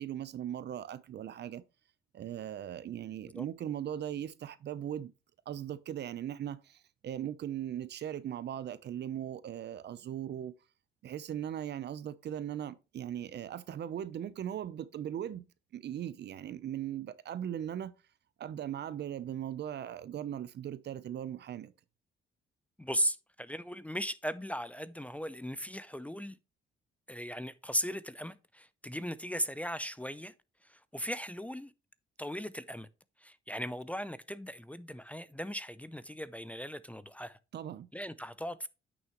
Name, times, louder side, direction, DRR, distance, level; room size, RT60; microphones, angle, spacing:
voice 1, 0.0-1.6 2.1-5.1 5.5-10.5 11.0-15.4 15.7-17.9 18.4-21.7 37.5-37.9, right 10 dB, 60° right, 0.7 m, -39 dB
voice 2, 22.8-26.4 27.1-30.3 30.6-31.7 32.2-32.9 33.2-37.4 37.9-38.7, equal, 5° left, 0.5 m, -37 dB
8.9 x 6.4 x 3.0 m
cardioid pair, 90°, 20 cm